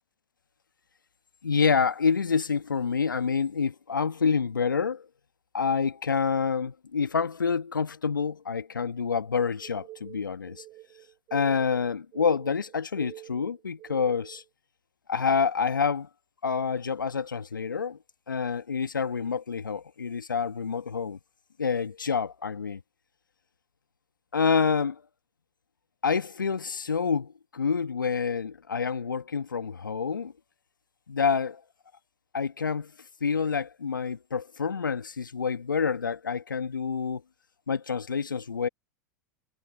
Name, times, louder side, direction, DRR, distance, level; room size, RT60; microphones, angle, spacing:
voice 1, 1.4-5.0 5.5-10.6 11.3-14.4 15.1-16.1 16.4-18.0 18.3-21.2 21.6-22.8 24.3-25.0 26.0-30.3 31.1-31.6 32.3-32.9 33.2-37.2 37.7-38.7, left 5 dB, 85° left, 1.3 m, -27 dB
sound 1, 9.6-14.5, right 17 dB, 40° right, 4.1 m, -47 dB
hypercardioid pair, 95°, 10 cm